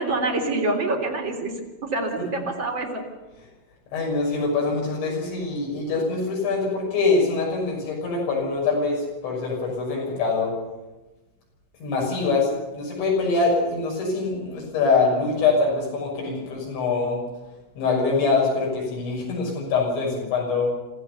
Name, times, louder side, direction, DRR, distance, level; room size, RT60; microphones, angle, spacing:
voice 1, 0.0-1.5 1.8-3.0, right 2 dB, 25° right, 0 dB, 3.3 m, -26 dB
voice 2, 3.9-10.5 11.8-17.2 17.8-20.7, left 4 dB, 65° left, -1 dB, 8.6 m, -24 dB
27.5 x 15.0 x 6.9 m, 1.1 s
omnidirectional pair, 5.7 m